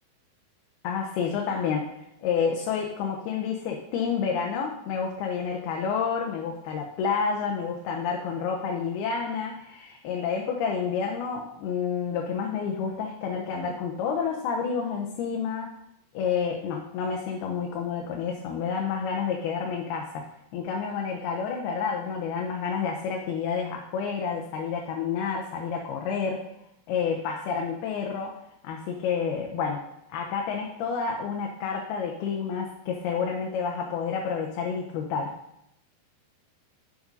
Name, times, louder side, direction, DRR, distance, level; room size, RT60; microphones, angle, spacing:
voice 1, 0.8-15.8 16.1-26.5 26.9-28.4 28.6-29.8 30.1-35.4, left 6 dB, 85° left, 1 dB, 2.8 m, -29 dB
7.3 x 6.9 x 5.2 m, 0.80 s
omnidirectional pair, 4.4 m